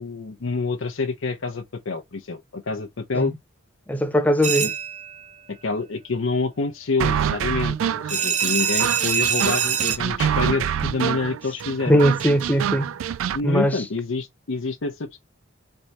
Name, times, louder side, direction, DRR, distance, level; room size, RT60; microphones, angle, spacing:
voice 1, 0.0-3.3 4.6-4.7 5.5-12.0 13.3-15.2, left 4 dB, 75° left, 0.6 m, -27 dB
voice 2, 3.9-4.6 11.9-12.9 13.4-13.8, equal, 10° left, 0.6 m, -19 dB
sound 1, 4.4-5.2 8.1-10.0, right 8 dB, 35° right, 0.6 m, -24 dB
sound 2, 7.0-13.4, right 8 dB, 80° right, 0.3 m, -26 dB
4.6 x 2.2 x 4.0 m
head